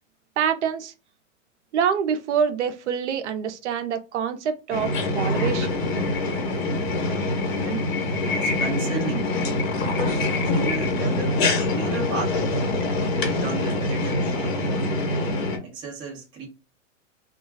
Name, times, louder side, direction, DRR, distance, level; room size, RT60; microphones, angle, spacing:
voice 1, 0.4-0.9 1.7-5.8, right 7 dB, 65° right, 0.6 m, -26 dB
sound 1, 4.7-15.6, left 2 dB, 55° left, 1.1 m, -24 dB
voice 2, 8.2-9.4 9.8-11.4 11.7-12.6 13.1-14.7 15.6-16.5, right 3 dB, 15° right, 0.5 m, -34 dB
2.3 x 2.2 x 3.3 m
hypercardioid pair, 155°, 38 cm